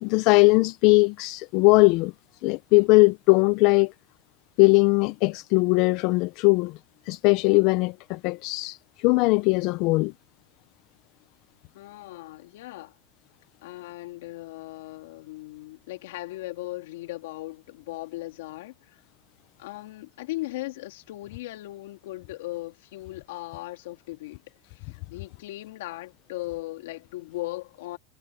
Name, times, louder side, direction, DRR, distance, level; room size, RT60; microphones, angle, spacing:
voice 1, 0.0-2.1 2.4-3.9 4.6-6.8 7.1-10.1, left 25 dB, 50° left, 0.4 m, -20 dB
voice 2, 11.7-13.0 13.6-19.0 19.6-24.4 24.7-28.0, left 18 dB, 75° left, 3.2 m, -38 dB
supercardioid pair, 150°, 0 cm